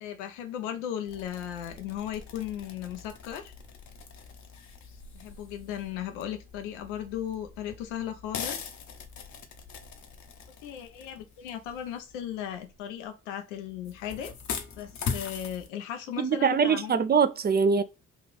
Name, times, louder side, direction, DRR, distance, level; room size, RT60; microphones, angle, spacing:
voice 1, 0.0-3.5 5.1-8.7 10.6-14.3 14.8-17.0, left 10 dB, 90° left, 0.6 m, -36 dB
sound 1, 1.1-13.1 13.7-15.7, left 6 dB, 55° left, 0.7 m, -41 dB
voice 2, 16.2-17.8, right 6 dB, 30° right, 0.4 m, -23 dB
2.9 x 2.4 x 3.1 m
hypercardioid pair, 45°, 35 cm